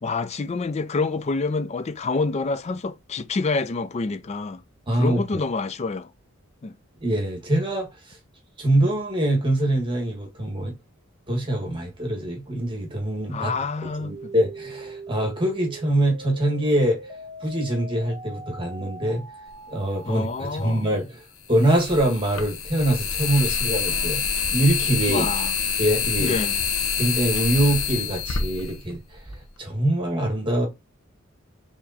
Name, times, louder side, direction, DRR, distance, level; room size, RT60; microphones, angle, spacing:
voice 1, 0.0-4.6 4.9-6.1 6.6-6.7 13.3-14.3 20.0-20.9 25.1-25.5 26.2-26.6, left 3 dB, 30° left, 0.4 m, -27 dB
voice 2, 4.9-5.2 7.0-8.2 8.6-10.7 11.3-13.5 13.8-17.0 17.4-19.2 19.7-21.2 21.5-24.2 24.5-25.2 25.8-26.3 27.0-29.0 29.3-30.7, right 1 dB, 25° right, 1.5 m, -24 dB
sound 1, 14.1-20.1, right 2 dB, ahead, 1.9 m, -41 dB
sound 2, 20.1-20.2 21.5-29.4, left 6 dB, 80° left, 0.9 m, -26 dB
4.9 x 3.6 x 2.7 m
head